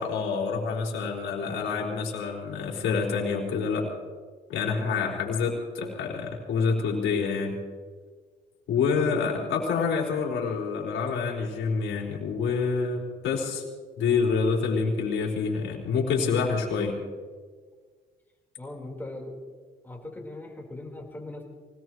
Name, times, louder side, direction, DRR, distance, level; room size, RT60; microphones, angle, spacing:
voice 1, 0.0-3.9 4.5-7.5 8.7-13.6 14.0-16.9, left 5 dB, 80° left, -2 dB, 4.4 m, -27 dB
voice 2, 1.4-1.7 4.7-5.2 9.0-9.5 18.6-19.4 19.8-21.4, left 2 dB, 10° left, 0 dB, 4.3 m, -40 dB
24.5 x 18.5 x 3.2 m, 1.5 s
cardioid pair, 90°, 20 cm